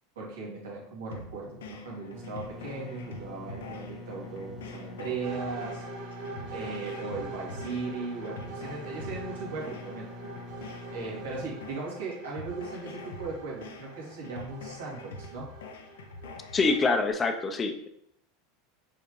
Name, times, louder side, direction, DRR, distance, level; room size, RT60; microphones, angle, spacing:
voice 1, 0.2-5.8 6.5-10.1 10.9-15.5, right 4 dB, 85° right, -4 dB, 2.5 m, -38 dB
sound 1, 1.1-17.1, left 3 dB, 90° left, 0.7 m, -45 dB
sound 2, 2.1-11.5, left 2 dB, 25° right, 1.5 m, -45 dB
sound 3, 5.2-17.0, right 4 dB, 70° right, 1.9 m, -44 dB
voice 2, 16.5-17.9, left 3 dB, 25° left, 6 dB, 0.8 m, -25 dB
7.0 x 4.9 x 3.3 m, 0.71 s
supercardioid pair, 110°, 0 cm